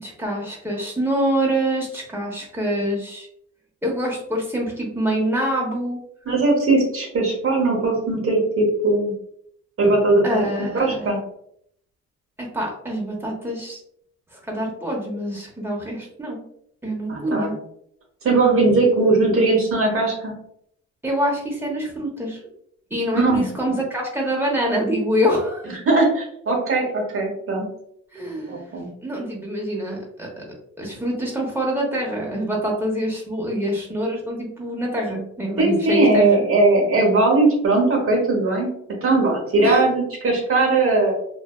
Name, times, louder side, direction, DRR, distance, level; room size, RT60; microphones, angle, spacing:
voice 1, 0.0-3.3 3.8-6.0 10.2-11.1 12.4-13.8 14.3-16.4 16.8-17.5 21.0-22.4 22.9-25.7 28.1-28.7 29.0-30.3 30.8-36.4 39.6-39.9, equal, 5° right, -3 dB, 0.9 m, -25 dB
voice 2, 6.3-9.1 9.8-11.2 17.1-17.5 18.2-20.3 23.1-23.5 25.9-27.7 28.5-28.9 35.6-38.7 39.0-41.1, right 2 dB, 45° right, -2 dB, 0.9 m, -19 dB
2.6 x 2.2 x 2.3 m, 0.70 s
cardioid pair, 90°, 30 cm